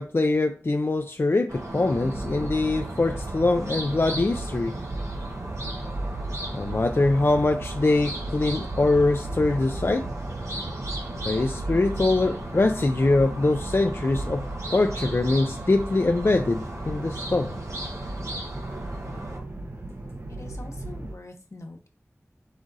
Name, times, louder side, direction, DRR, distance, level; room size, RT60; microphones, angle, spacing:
voice 1, 0.0-4.8 6.5-10.1 11.3-14.4 14.7-17.5, left 2 dB, 50° left, 0.4 m, -23 dB
sound 1, 1.5-19.4, right 1 dB, 75° right, 1.1 m, -36 dB
sound 2, 2.0-21.1, right 2 dB, 55° right, 0.8 m, -36 dB
voice 2, 20.3-21.9, left 2 dB, 75° left, 0.9 m, -43 dB
4.9 x 2.5 x 4.0 m
wide cardioid pair, 40°, 5 cm